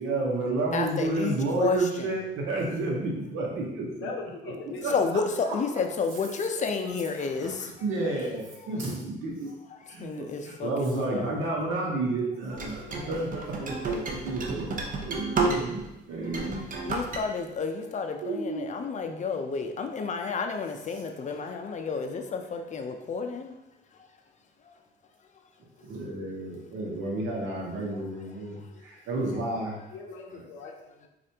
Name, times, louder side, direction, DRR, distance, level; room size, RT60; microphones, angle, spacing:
voice 1, 0.0-3.9 4.8-4.9 5.5-5.6 7.2-7.6 7.8-9.5 9.9-14.7 15.0-16.6 18.2-18.7 25.8-29.8 30.3-30.4, right 2 dB, 85° right, -2 dB, 0.9 m, -31 dB
voice 2, 0.7-2.1 4.8-7.7 9.7-11.5 16.8-23.6 24.0-24.1 24.6-24.8 27.9-28.0 28.6-28.8, left 5 dB, 40° left, 5 dB, 0.5 m, -31 dB
voice 3, 3.9-5.9 6.2-6.9 12.7-13.1 21.3-21.4 29.9-31.1, left 4 dB, 90° left, 2 dB, 0.6 m, -42 dB
sound 1, 12.6-15.9 16.2-17.2, right 3 dB, 45° right, 0.6 m, -31 dB
4.2 x 2.4 x 2.8 m, 0.93 s
cardioid pair, 90°, 20 cm